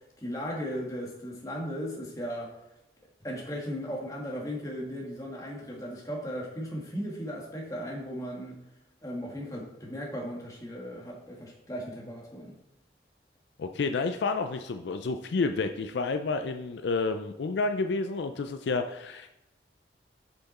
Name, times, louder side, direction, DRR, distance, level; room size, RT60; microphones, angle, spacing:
voice 1, 0.2-2.6 3.2-8.6 9.0-12.5, equal, 20° left, -3 dB, 1.5 m, -36 dB
voice 2, 13.6-19.3, left 4 dB, 70° left, 7 dB, 0.4 m, -30 dB
6.7 x 5.8 x 4.1 m, 0.88 s
head